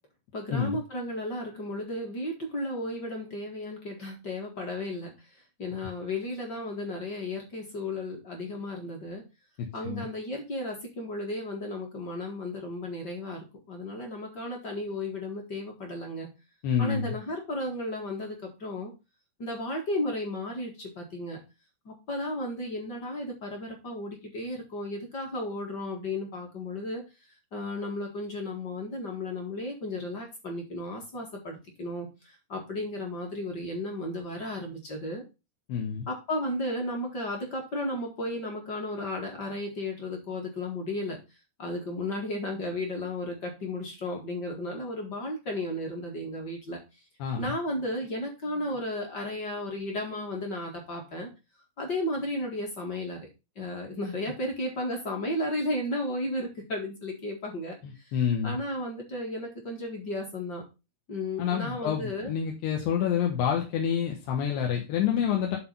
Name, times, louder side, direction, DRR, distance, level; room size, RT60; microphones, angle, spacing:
voice 1, 0.3-5.1 5.6-9.2 9.7-16.3 16.8-18.9 19.4-21.4 21.8-27.0 27.5-32.1 32.5-35.2 36.1-41.2 41.6-46.8 47.4-51.3 51.8-53.3 53.5-57.8 58.4-60.6 61.1-62.3, left 1 dB, 40° left, 1 dB, 1.5 m, -34 dB
voice 2, 16.6-17.1 35.7-36.1 47.2-47.4 57.8-58.6 61.4-65.6, left 8 dB, 80° left, 1 dB, 3.3 m, -28 dB
8.4 x 4.1 x 5.5 m, 0.27 s
omnidirectional pair, 4.7 m